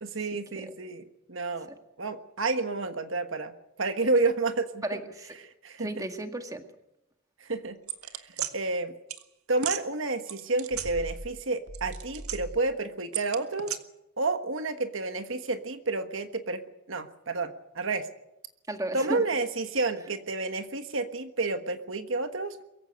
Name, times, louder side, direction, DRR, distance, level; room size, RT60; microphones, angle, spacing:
voice 1, 0.0-1.7 2.0-3.5 3.8-4.8 5.6-6.1 7.4-7.8 8.5-8.9 9.5-13.8 14.2-16.6 16.9-18.1 18.9-22.6, right 3 dB, 60° right, 8 dB, 1.4 m, -30 dB
voice 2, 4.8-5.3 5.8-6.6 18.7-19.2, right 1 dB, 15° right, 6 dB, 1.9 m, -34 dB
sound 1, 7.9-8.5 9.1-9.2 9.6-9.8 10.3-11.4 11.7-12.6 13.1-13.8, right 8 dB, 85° right, 1.7 m, -35 dB
23.0 x 15.5 x 9.4 m, 0.85 s
head